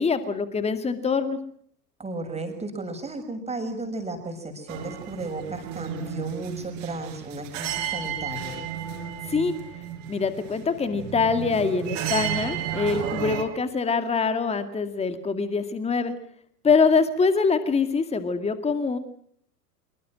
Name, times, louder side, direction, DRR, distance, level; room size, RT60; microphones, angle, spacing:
voice 1, 0.0-1.4 9.3-9.5 10.1-16.1 16.6-19.0, left 5 dB, 15° left, 10 dB, 2.1 m, -24 dB
voice 2, 2.0-8.6, right 2 dB, 15° right, 6 dB, 6.5 m, -34 dB
sound 1, 4.7-13.4, right 9 dB, 50° right, 5.3 m, -33 dB
26.0 x 23.5 x 6.3 m, 0.63 s
figure-of-eight pair, 90°, 47 cm